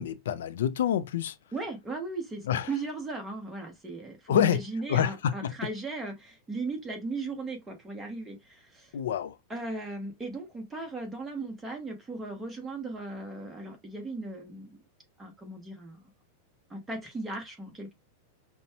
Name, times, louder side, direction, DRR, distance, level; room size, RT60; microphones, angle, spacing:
voice 1, 0.0-1.4 2.4-2.7 4.3-4.6 4.9-5.5 8.9-9.4, left 9 dB, 90° left, 0.4 m, -27 dB
voice 2, 1.5-8.9 9.5-14.7 15.2-16.1 16.7-17.9, right 3 dB, 10° right, 1.0 m, -37 dB
5.3 x 2.2 x 2.8 m
supercardioid pair, 170°, 0 cm